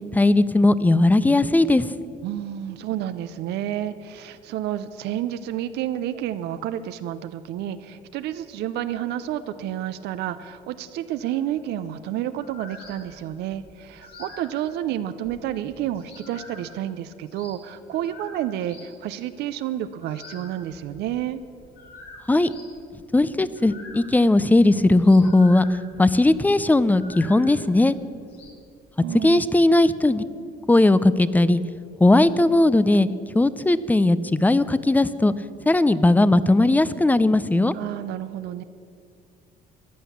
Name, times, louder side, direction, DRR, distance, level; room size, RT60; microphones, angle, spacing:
voice 1, 0.1-1.9 22.3-22.5 23.1-25.7 26.0-28.0 29.2-30.2 30.7-31.6 32.0-33.1 33.3-35.3 35.7-37.7, left 2 dB, 10° left, 16 dB, 0.5 m, -18 dB
voice 2, 2.2-21.4 29.0-29.4 37.7-38.6, right 11 dB, 80° right, 11 dB, 0.6 m, -30 dB
sound 1, 11.2-11.4 12.3-18.9 19.9-28.5, left 3 dB, 70° left, 3.8 m, -46 dB
14.5 x 10.5 x 7.2 m, 2.4 s
cardioid pair, 110°, 17 cm